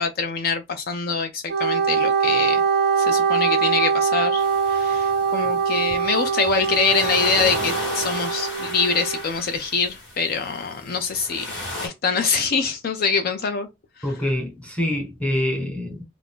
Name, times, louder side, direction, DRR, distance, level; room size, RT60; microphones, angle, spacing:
voice 1, 0.0-2.6 3.0-11.5 11.8-13.7 14.0-14.1, left 5 dB, 55° left, 0.4 m, -24 dB
Wind instrument woodwind instrument, 1.5-9.2, right 6 dB, 60° right, 0.5 m, -22 dB
sound 1, 4.4-11.9, left 1 dB, 85° left, 1.4 m, -34 dB
voice 2, 14.0-16.0, left 1 dB, 5° left, 1.0 m, -25 dB
2.5 x 2.4 x 3.5 m
head